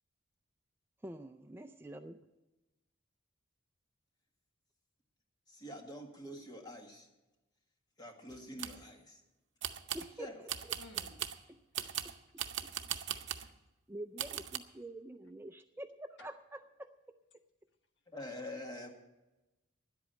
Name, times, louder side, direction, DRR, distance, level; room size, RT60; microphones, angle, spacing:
voice 1, 1.0-2.2 9.9-10.5 11.5-11.9 12.6-12.7 13.1-13.2 13.9-16.9, right 1 dB, 10° right, 8 dB, 0.4 m, -47 dB
voice 2, 5.5-7.1 8.0-9.2 10.2-10.4 18.1-18.9, left 1 dB, 20° left, 2 dB, 1.7 m, -46 dB
sound 1, 8.3-8.8 9.6-10.1 10.5-11.4 11.7-13.5 14.2-14.6, right 10 dB, 65° right, 0.7 m, -39 dB
voice 3, 10.8-11.5 11.8-12.5 13.1-13.5, left 2 dB, 60° left, 6 dB, 1.3 m, -59 dB
10.5 x 8.3 x 8.8 m, 1.0 s
head